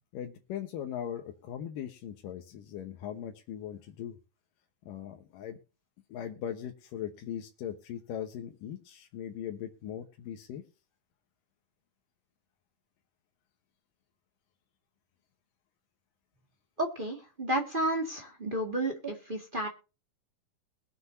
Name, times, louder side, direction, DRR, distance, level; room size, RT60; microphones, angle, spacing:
voice 1, 0.1-4.2 4.9-5.6 6.1-10.6, left 10 dB, 80° left, 4 dB, 2.7 m, -39 dB
voice 2, 16.8-19.7, right 1 dB, 25° right, 0 dB, 1.2 m, -32 dB
21.5 x 7.9 x 2.7 m, 0.32 s
omnidirectional pair, 3.9 m